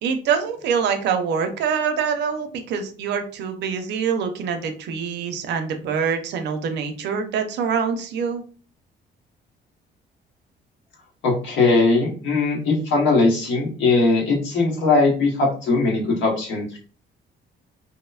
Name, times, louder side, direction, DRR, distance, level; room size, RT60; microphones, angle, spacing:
voice 1, 0.0-8.4, right 6 dB, 70° right, 6 dB, 0.5 m, -25 dB
voice 2, 11.2-16.8, left 3 dB, 90° left, -2 dB, 1.1 m, -20 dB
2.9 x 2.1 x 2.3 m, 0.40 s
cardioid pair, 165°, 19 cm